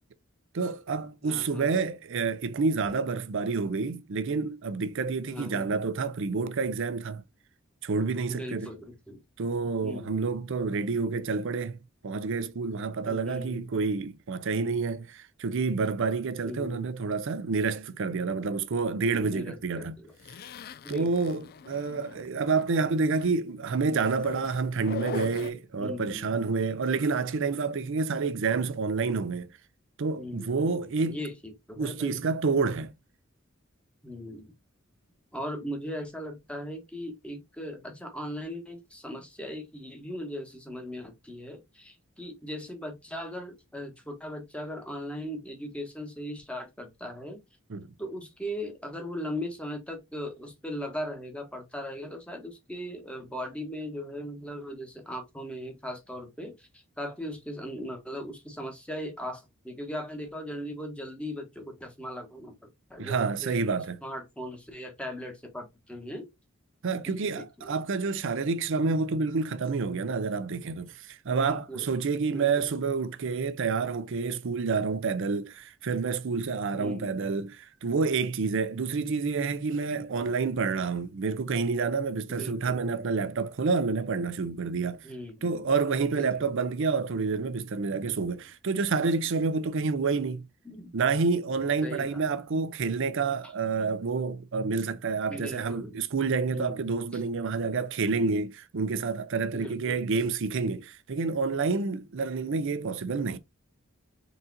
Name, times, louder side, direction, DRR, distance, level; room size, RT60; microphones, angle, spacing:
voice 1, 0.5-7.2 7.8-8.7 9.4-11.8 12.0-20.0 20.9-29.5 30.0-31.2 31.8-32.9 47.7-47.9 63.0-64.0 66.8-85.0 85.4-90.4 90.9-103.4, right 4 dB, 65° right, 0.5 m, -28 dB
voice 2, 1.2-1.8 5.3-5.8 8.3-9.2 9.8-10.4 13.0-13.7 16.4-17.0 19.3-20.1 20.8-21.3 25.7-26.3 30.2-32.2 34.0-34.5 35.3-47.4 48.0-63.6 64.0-66.3 67.2-67.7 71.3-71.9 72.3-72.6 76.7-77.3 82.3-82.8 85.0-85.7 86.1-86.7 90.6-90.9 91.8-92.2 95.3-96.0 96.5-97.2 99.5-100.0, equal, 5° left, 1.2 m, -39 dB
Zipper (clothing), 20.2-22.7 23.0-23.3 23.9-25.5, left 7 dB, 45° left, 0.3 m, -41 dB
4.0 x 3.8 x 2.6 m
head